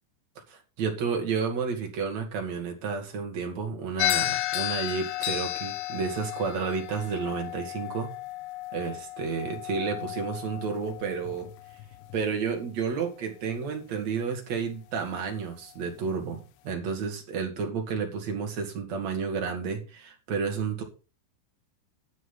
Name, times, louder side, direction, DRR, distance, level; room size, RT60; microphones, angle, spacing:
voice 1, 0.5-8.1 8.7-11.5 12.1-20.8, right 5 dB, 45° right, 2 dB, 2.8 m, -31 dB
sound 1, 4.0-12.3, left 16 dB, 75° left, 2.8 m, -33 dB
13.5 x 8.2 x 4.0 m, 0.32 s
omnidirectional pair, 5.7 m